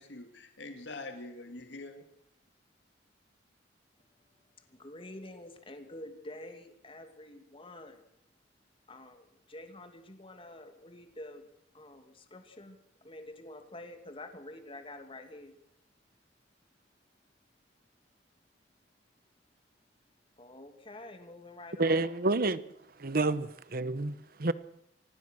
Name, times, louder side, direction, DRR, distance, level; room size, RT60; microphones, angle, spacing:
voice 1, 0.0-2.0, left 2 dB, 80° left, 2.1 m, -44 dB
voice 2, 4.6-8.0 8.9-11.5 11.7-15.5 20.4-22.0 23.2-23.4, left 1 dB, 30° left, 2.6 m, -48 dB
voice 3, 21.8-22.6 23.0-23.5 23.7-24.5, right 2 dB, 55° right, 1.1 m, -28 dB
25.0 x 19.0 x 6.4 m
head